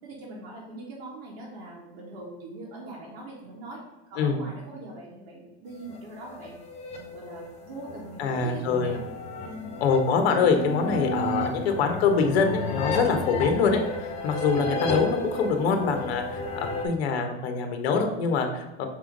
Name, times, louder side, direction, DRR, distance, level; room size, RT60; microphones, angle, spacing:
voice 1, 0.0-3.8 4.1-6.6 7.0-9.0 9.3-9.9 11.2-11.6, right 2 dB, 65° right, -6 dB, 1.8 m, -42 dB
sound 1, 5.8-16.8, left 2 dB, 20° left, 0.8 m, -33 dB
voice 2, 8.2-8.9 9.8-13.8 14.2-18.9, left 5 dB, 70° left, 5 dB, 1.2 m, -24 dB
5.6 x 3.5 x 5.2 m, 1.1 s
supercardioid pair, 165°, 32 cm